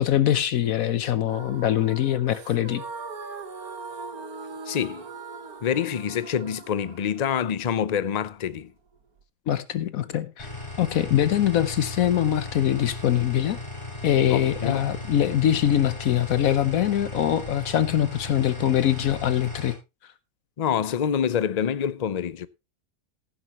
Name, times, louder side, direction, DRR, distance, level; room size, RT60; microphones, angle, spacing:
voice 1, 0.0-2.8 9.5-10.5 10.8-13.6 14.0-19.8 20.0-20.1, left 11 dB, 75° left, 1.2 m, -23 dB
sound 1, 1.3-9.2, right 4 dB, 90° right, 1.8 m, -41 dB
voice 2, 4.7-5.1 5.6-8.7 14.3-14.8 20.6-22.5, left 8 dB, 50° left, 0.5 m, -26 dB
sound 2, 10.4-19.7, left 2 dB, 25° left, 6.1 m, -37 dB
15.0 x 10.5 x 3.0 m
omnidirectional pair, 1.5 m